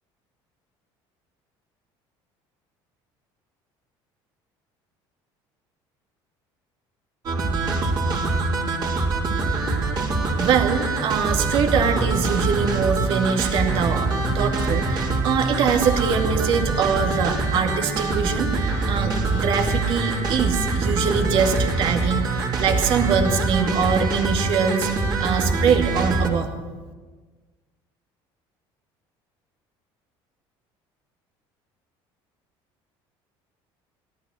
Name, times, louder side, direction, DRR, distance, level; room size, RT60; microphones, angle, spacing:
sound 1, 7.2-26.3, right 3 dB, 45° right, 3.4 m, -24 dB
voice 1, 10.4-14.1 14.3-24.9 25.2-26.5, right 6 dB, 60° right, 4 dB, 2.2 m, -23 dB
17.5 x 13.0 x 6.3 m, 1.4 s
cardioid pair, 140°, 10 cm